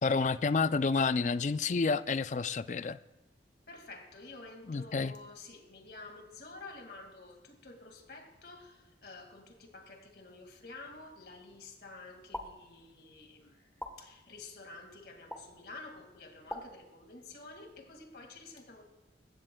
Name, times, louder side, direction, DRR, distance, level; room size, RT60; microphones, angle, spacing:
voice 1, 0.0-3.0 4.7-5.1, left 4 dB, 40° left, 14 dB, 0.4 m, -29 dB
voice 2, 3.7-18.8, left 3 dB, 60° left, 4 dB, 2.1 m, -50 dB
sound 1, 12.3-12.5 13.8-13.9 15.3-15.4 16.5-16.6, left 1 dB, 5° left, 1.2 m, -39 dB
21.0 x 16.5 x 2.3 m, 1.0 s
head